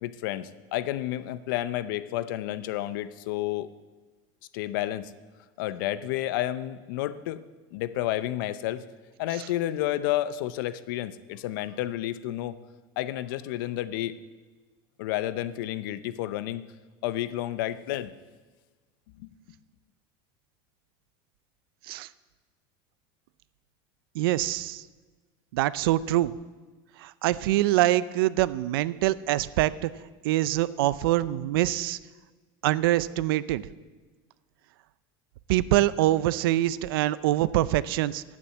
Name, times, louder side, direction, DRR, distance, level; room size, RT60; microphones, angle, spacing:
voice 1, 0.0-3.7 4.5-5.1 5.6-7.4 7.7-8.9 9.2-12.6 13.0-14.2 15.0-16.6 17.0-18.1 19.2-19.3, left 14 dB, 65° left, 15 dB, 0.6 m, -30 dB
voice 2, 24.1-24.8 25.5-26.4 27.0-29.9 30.2-32.0 32.6-33.7 35.5-38.2, right 15 dB, 80° right, 18 dB, 0.5 m, -24 dB
9.6 x 8.6 x 8.1 m, 1.3 s
supercardioid pair, 170°, 12 cm